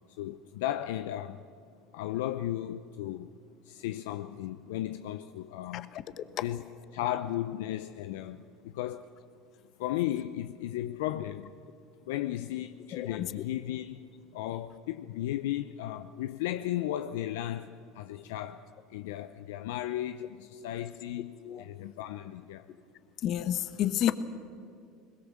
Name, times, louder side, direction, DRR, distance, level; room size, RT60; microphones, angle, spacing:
voice 1, 0.1-1.4 1.9-3.4 3.6-5.9 6.4-6.6 6.9-9.1 9.8-11.5 12.1-14.0 14.3-18.6 18.9-22.7, left 13 dB, 75° left, 0.6 m, -35 dB
voice 2, 5.7-6.2 12.9-13.3 21.4-21.6 23.2-24.1, left 11 dB, 55° left, 1.2 m, -30 dB
22.0 x 20.5 x 7.4 m
hypercardioid pair, 80°, 0 cm